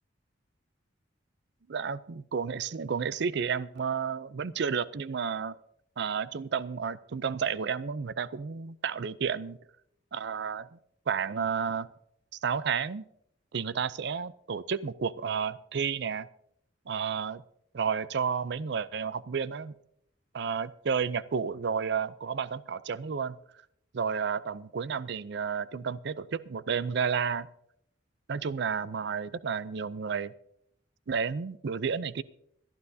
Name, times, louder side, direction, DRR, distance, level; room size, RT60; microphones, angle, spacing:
voice 1, 1.7-5.6 6.0-9.6 10.1-10.8 11.1-11.9 12.4-13.0 13.5-16.3 16.9-17.4 17.7-19.7 20.3-23.4 23.9-27.5 28.3-30.3 31.1-32.2, right 6 dB, 65° right, 17 dB, 0.5 m, -31 dB
21.0 x 12.0 x 2.7 m, 0.72 s
head